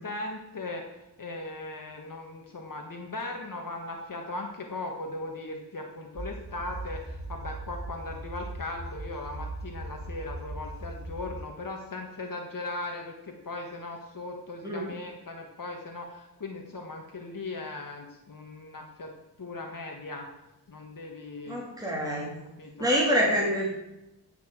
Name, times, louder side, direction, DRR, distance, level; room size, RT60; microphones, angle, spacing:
voice 1, 0.0-19.1 19.4-20.3 20.7-21.6 22.6-22.9, left 2 dB, 45° left, 2 dB, 1.7 m, -38 dB
sound 1, 6.2-11.4, right 2 dB, 65° right, 3.5 m, -39 dB
voice 2, 14.6-14.9 21.5-22.3 22.8-23.7, equal, 10° right, -4 dB, 3.0 m, -26 dB
16.0 x 6.0 x 7.7 m, 0.91 s
wide cardioid pair, 145°, 44 cm